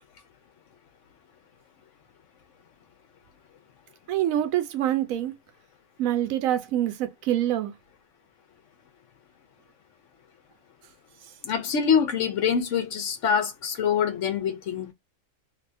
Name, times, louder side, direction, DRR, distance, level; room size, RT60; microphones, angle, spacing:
voice 1, 4.1-5.4 6.0-7.8 11.2-11.3, right 12 dB, 85° right, 1.0 m, -26 dB
voice 2, 11.4-14.9, left 7 dB, 70° left, 1.0 m, -25 dB
3.3 x 2.7 x 2.5 m
omnidirectional pair, 1.4 m